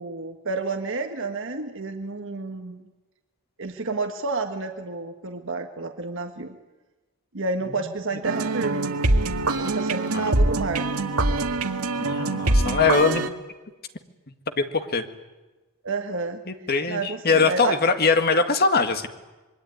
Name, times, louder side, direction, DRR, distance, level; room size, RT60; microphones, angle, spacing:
voice 1, 0.0-2.8 3.6-6.6 7.3-8.9 9.6-10.9 15.8-16.4 16.9-17.8, right 3 dB, 60° right, 5 dB, 1.5 m, -30 dB
sound 1, 8.2-13.3, right 2 dB, 85° right, 1.9 m, -24 dB
voice 2, 12.0-13.2 14.6-15.0 16.5-19.1, left 4 dB, 45° left, 8 dB, 1.9 m, -22 dB
26.0 x 22.5 x 9.6 m, 1.2 s
head